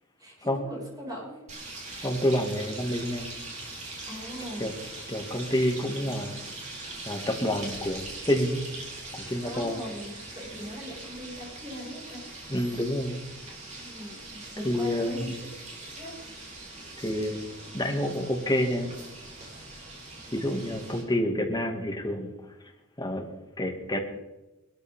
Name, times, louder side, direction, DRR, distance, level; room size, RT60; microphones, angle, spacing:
voice 1, 0.2-1.4 4.1-4.7 9.4-12.2 13.7-15.3 15.9-16.1 20.9-21.0, equal, 20° right, -4 dB, 6.1 m, -40 dB
sound 1, 1.5-21.0, right 2 dB, 35° right, 4.2 m, -42 dB
voice 2, 2.0-3.3 4.6-4.7 5.1-6.4 7.1-8.6 9.1-9.8 12.5-13.2 14.7-15.3 17.0-17.5 17.7-18.9 20.3-22.3 23.0-23.2 23.6-24.0, left 1 dB, 20° left, 2 dB, 2.1 m, -28 dB
20.5 x 13.5 x 3.7 m, 1.0 s
head